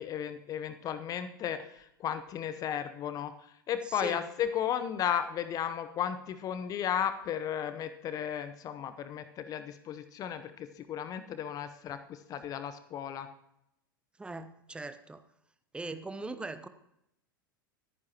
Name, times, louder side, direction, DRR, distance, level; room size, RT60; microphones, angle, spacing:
voice 1, 0.0-3.3 3.7-13.3, left 9 dB, 30° left, 11 dB, 0.8 m, -34 dB
voice 2, 3.9-4.2 14.2-15.2 15.7-16.7, right 3 dB, 10° right, 10 dB, 0.9 m, -40 dB
24.5 x 9.6 x 2.9 m, 0.80 s
figure-of-eight pair, 85°, 12 cm